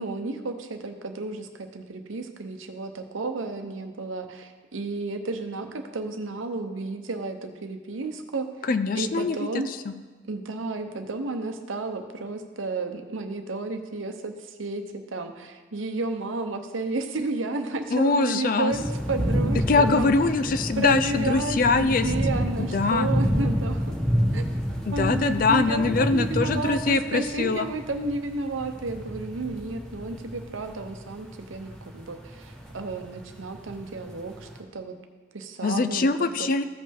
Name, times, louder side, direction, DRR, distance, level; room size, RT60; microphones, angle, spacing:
voice 1, 0.0-8.5 8.9-9.7 10.2-20.1 20.8-24.0 24.3-24.5 24.9-34.9 35.3-36.5, right 3 dB, 90° right, 7 dB, 0.8 m, -32 dB
voice 2, 8.7-9.9 17.9-18.7 19.7-22.1 22.6-23.1 24.9-27.7 35.6-36.6, left 4 dB, 45° left, 11 dB, 0.4 m, -23 dB
sound 1, 18.7-34.6, equal, 5° left, 1.0 m, -29 dB
14.5 x 5.4 x 3.5 m, 1.4 s
head